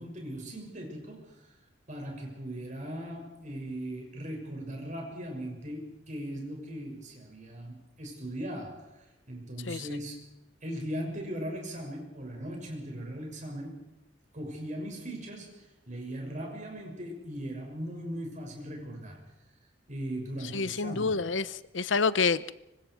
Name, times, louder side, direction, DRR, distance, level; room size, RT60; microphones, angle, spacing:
voice 1, 0.0-1.4 1.9-10.2 10.6-13.9 14.3-19.2 19.9-21.2, right 1 dB, 40° right, 2 dB, 6.6 m, -39 dB
voice 2, 20.5-22.5, left 4 dB, 75° left, 15 dB, 0.9 m, -28 dB
25.5 x 25.0 x 4.8 m, 0.90 s
head